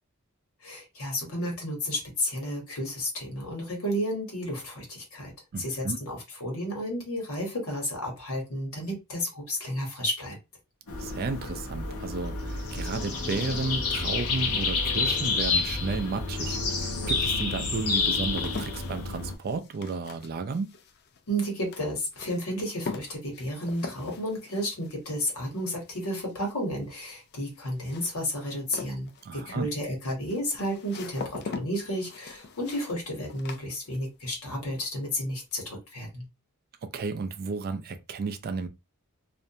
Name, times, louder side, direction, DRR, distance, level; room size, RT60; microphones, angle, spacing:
voice 1, 0.6-5.3 5.6-10.4 21.3-36.2, equal, 65° left, 1.2 m, -32 dB
voice 2, 5.5-6.0 11.0-16.6 17.1-20.7 29.2-29.7 36.8-38.7, right 4 dB, 45° right, 0.3 m, -33 dB
sound 1, 10.9-19.3, left 4 dB, 90° left, 0.7 m, -29 dB
sound 2, 17.9-34.4 34.6-35.2, left 4 dB, 45° left, 0.4 m, -43 dB
2.5 x 2.1 x 2.7 m
head